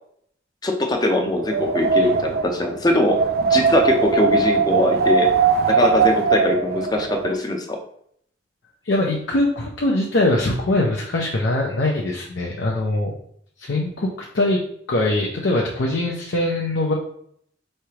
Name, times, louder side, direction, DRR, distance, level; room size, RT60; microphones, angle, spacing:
voice 1, 0.6-5.3 5.7-7.8, left 1 dB, 20° left, 3 dB, 0.6 m, -21 dB
Wind, 1.3-7.3, right 5 dB, 55° right, 0.3 m, -20 dB
voice 2, 8.8-13.1 13.6-14.6 14.9-16.9, left 2 dB, 75° left, -2 dB, 0.6 m, -22 dB
4.6 x 3.2 x 2.9 m, 0.68 s
head